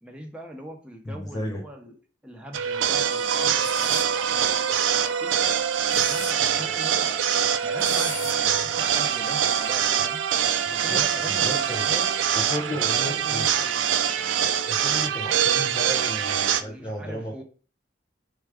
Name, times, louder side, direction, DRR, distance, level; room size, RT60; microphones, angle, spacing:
voice 1, 0.0-2.0 2.2-5.4 5.9-7.3 7.6-10.2 10.5-12.1 12.5-13.8 16.6-17.4, equal, 5° right, 1 dB, 0.7 m, -41 dB
voice 2, 1.1-1.6 6.6-6.8 10.7-11.9 12.3-13.5 14.6-17.4, left 1 dB, 20° left, 2 dB, 0.4 m, -34 dB
sound 1, 2.5-16.6, right 8 dB, 85° right, 0.4 m, -24 dB
sound 2, 3.6-4.1 5.7-6.3 7.8-8.3, left 5 dB, 90° left, 0.8 m, -36 dB
4.6 x 2.3 x 4.7 m, 0.38 s
head